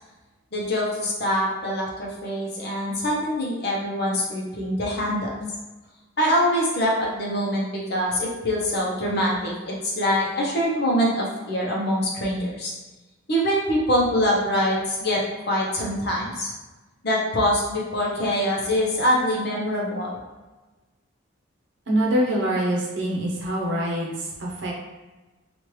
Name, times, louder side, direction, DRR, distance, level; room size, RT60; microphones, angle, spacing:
voice 1, 0.5-5.3 6.2-12.7 13.3-15.2 15.5-16.5 17.0-20.2, equal, 55° left, -3 dB, 0.8 m, -24 dB
voice 2, 21.9-24.7, right 1 dB, 60° right, -3 dB, 0.8 m, -24 dB
3.1 x 2.5 x 3.1 m, 1.2 s
head